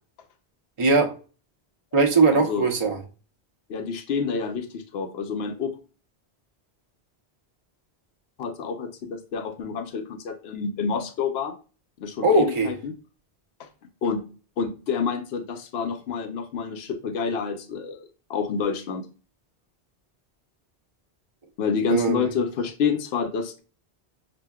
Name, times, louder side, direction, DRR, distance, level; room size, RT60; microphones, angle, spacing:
voice 1, 0.8-1.1 1.9-3.0 12.2-12.7 21.9-22.3, right 3 dB, 35° right, 0.8 m, -20 dB
voice 2, 2.3-2.7 3.7-5.8 8.4-11.6 12.0-12.9 13.6-14.2 14.6-19.1 21.6-23.6, left 5 dB, 75° left, 0.9 m, -28 dB
6.0 x 2.2 x 2.2 m
omnidirectional pair, 1.1 m